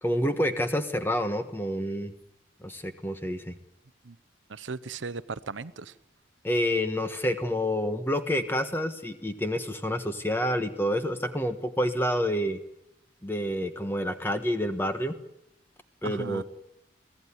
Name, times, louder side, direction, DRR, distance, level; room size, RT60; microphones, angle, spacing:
voice 1, 0.0-2.1 2.6-3.5 6.4-12.6 13.2-15.2 16.0-16.4, equal, 10° left, 1.4 m, -28 dB
voice 2, 4.5-6.0 16.0-16.4, right 4 dB, 85° right, 0.8 m, -37 dB
24.0 x 16.5 x 9.9 m
head